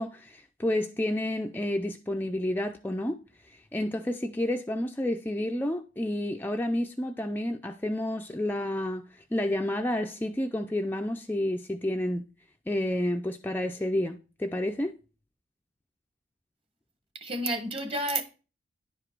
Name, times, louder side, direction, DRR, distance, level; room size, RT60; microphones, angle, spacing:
voice 1, 0.0-3.2 3.5-12.3 12.7-14.9, left 1 dB, 10° left, 0.4 m, -30 dB
voice 2, 17.1-18.2, right 1 dB, 30° right, 1.3 m, -30 dB
10.5 x 4.9 x 4.5 m
head